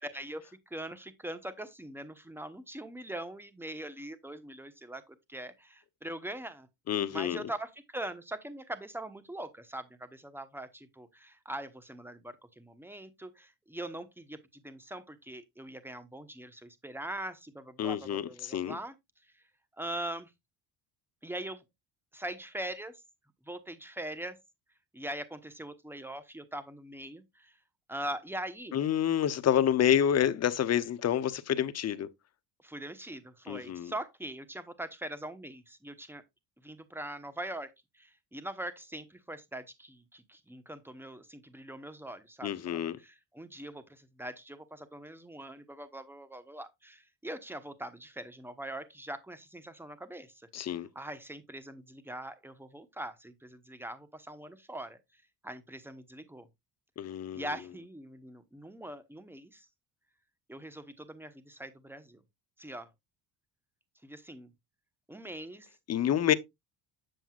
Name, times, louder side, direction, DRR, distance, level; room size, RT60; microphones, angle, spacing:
voice 1, 0.0-6.7 7.1-18.9 19.2-19.4 19.8-20.3 21.2-21.6 22.1-23.0 23.4-24.4 24.9-27.6 27.9-28.8 32.6-36.2 36.6-56.5 57.3-59.7 60.5-62.2 62.6-62.9 64.0-64.5 65.1-65.7 66.1-66.2, right 1 dB, 5° right, 1.0 m, -42 dB
voice 2, 6.9-7.4 17.8-18.8 28.7-32.1 33.5-33.9 42.4-43.0 50.5-50.9 57.0-57.4 65.9-66.3, left 10 dB, 35° left, 0.7 m, -28 dB
7.7 x 7.1 x 2.4 m
supercardioid pair, 90°, 44 cm